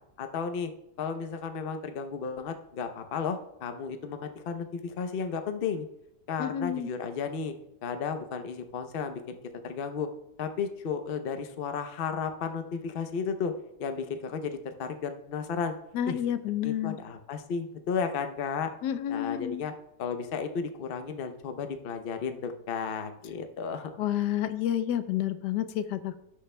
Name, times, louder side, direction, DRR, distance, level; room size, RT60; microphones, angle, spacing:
voice 1, 0.2-0.7 1.0-5.9 6.3-7.5 7.8-9.4 9.6-10.1 10.4-13.5 13.8-15.7 16.1-16.2 16.6-18.7 19.1-19.7 20.0-24.0, left 6 dB, 50° left, 7 dB, 0.7 m, -33 dB
voice 2, 6.4-6.9 15.9-17.0 18.8-19.6 24.0-26.2, left 11 dB, 90° left, 11 dB, 1.2 m, -29 dB
17.5 x 6.6 x 2.2 m, 0.84 s
omnidirectional pair, 1.8 m